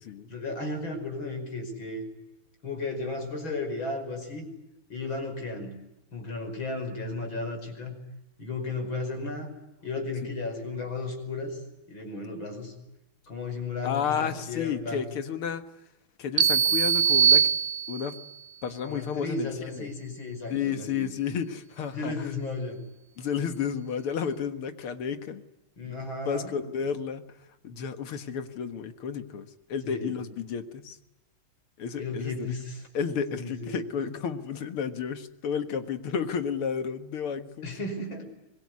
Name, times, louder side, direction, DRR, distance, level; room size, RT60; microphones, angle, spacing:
voice 1, 0.3-2.1 2.6-4.5 4.9-5.8 6.1-8.0 8.4-9.5 9.8-11.6 11.9-12.7 13.3-15.0 18.9-21.1 21.9-22.8 25.8-26.5 29.9-30.2 32.0-32.9 33.3-33.8 37.6-38.2, left 3 dB, 65° left, 4 dB, 6.2 m, -34 dB
voice 2, 13.8-15.6 16.2-17.5 17.9-18.2 18.6-19.5 19.8-19.9 20.5-22.1 23.2-25.4 25.8-27.3 27.6-31.0 31.8-32.5 32.9-37.7, left 7 dB, 85° left, 9 dB, 2.5 m, -32 dB
sound 1, 16.4-18.2, right 7 dB, 60° right, 1.8 m, -22 dB
24.5 x 21.5 x 9.6 m, 0.91 s
omnidirectional pair, 2.3 m